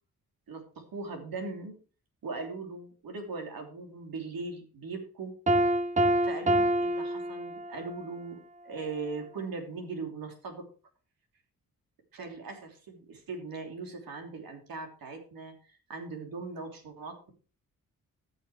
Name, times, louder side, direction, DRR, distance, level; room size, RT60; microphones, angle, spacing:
voice 1, 0.5-1.8 2.2-5.4 6.2-10.7 12.1-17.3, right 3 dB, 80° right, 3 dB, 3.1 m, -40 dB
Piano, 5.5-8.0, right 1 dB, 20° right, 1.0 m, -26 dB
13.5 x 6.7 x 4.9 m, 0.37 s
cardioid pair, 70°, 35 cm